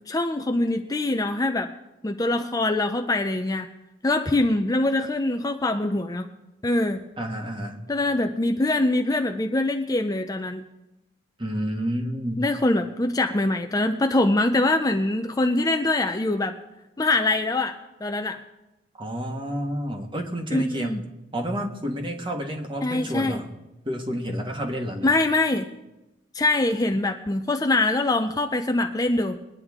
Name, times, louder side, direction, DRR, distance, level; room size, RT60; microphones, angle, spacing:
voice 1, 0.1-1.7 2.0-3.7 4.0-6.3 6.6-7.0 7.9-10.6 12.4-16.5 17.0-17.7 18.0-18.4 20.5-21.0 22.8-23.4 25.0-25.7 26.3-29.4, left 2 dB, 20° left, 5 dB, 0.5 m, -23 dB
voice 2, 7.2-7.8 11.4-12.4 19.0-21.0 21.3-23.5 23.8-25.1, equal, 25° right, 2 dB, 1.5 m, -30 dB
22.0 x 9.9 x 3.6 m, 0.98 s
head